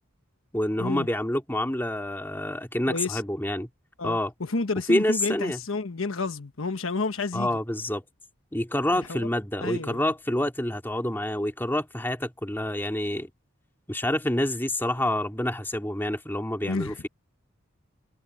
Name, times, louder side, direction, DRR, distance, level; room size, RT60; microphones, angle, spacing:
voice 1, 0.5-3.7 4.0-4.3 4.9-5.6 7.3-8.0 8.5-13.3 13.9-17.1, left 1 dB, 10° left, 2.2 m, -27 dB
voice 2, 2.9-3.2 4.0-7.6 8.9-9.3 9.6-10.1 16.6-17.0, left 3 dB, 80° left, 1.2 m, -30 dB
head